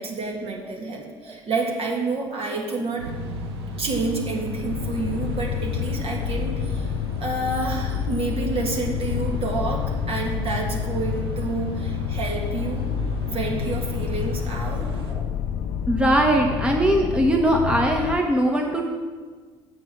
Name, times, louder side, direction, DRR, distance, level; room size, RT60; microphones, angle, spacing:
voice 1, 0.0-3.1 3.8-6.9 7.2-12.9 13.2-14.9, right 3 dB, 45° right, 0 dB, 2.0 m, -29 dB
sound 1, 3.0-15.1, left 2 dB, 90° right, 0.8 m, -33 dB
sound 2, 4.5-18.2, left 9 dB, 70° left, 0.5 m, -29 dB
voice 2, 15.9-18.8, right 1 dB, 10° right, 1 dB, 1.2 m, -20 dB
7.9 x 6.2 x 6.1 m, 1.5 s
hypercardioid pair, 55°, 13 cm